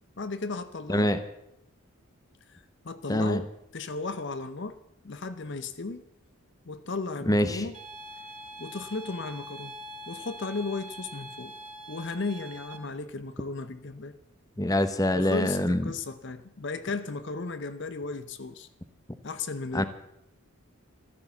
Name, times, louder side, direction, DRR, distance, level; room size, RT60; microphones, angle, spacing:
voice 1, 0.2-1.1 2.5-4.8 5.0-6.0 6.6-7.8 8.6-9.8 10.1-11.5 11.9-14.2 15.1-18.7 19.2-19.8, left 3 dB, 55° left, 12 dB, 0.7 m, -35 dB
voice 2, 0.9-1.2 3.1-3.4 7.3-7.6 14.6-15.9 19.7-19.8, left 1 dB, 15° left, 11 dB, 1.0 m, -24 dB
sound 1, 7.7-12.8, right 1 dB, 40° right, 2.6 m, -44 dB
14.5 x 13.5 x 7.0 m, 0.80 s
head